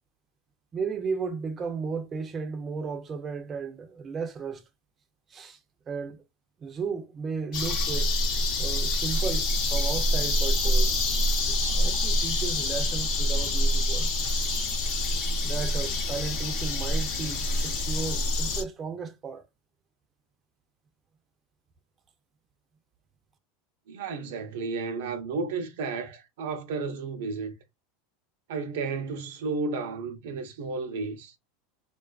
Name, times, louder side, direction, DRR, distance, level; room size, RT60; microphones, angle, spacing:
voice 1, 0.7-4.6 5.3-5.6 5.9-6.2 6.6-8.1 8.6-10.9 11.5-14.2 15.4-19.5, right 5 dB, 30° right, 0.5 m, -34 dB
sound 1, 7.5-18.6, left 1 dB, 60° left, 0.8 m, -26 dB
voice 2, 23.9-27.5 28.5-31.3, right 4 dB, 80° right, 0.5 m, -32 dB
2.4 x 2.3 x 2.3 m
supercardioid pair, 110°, 0 cm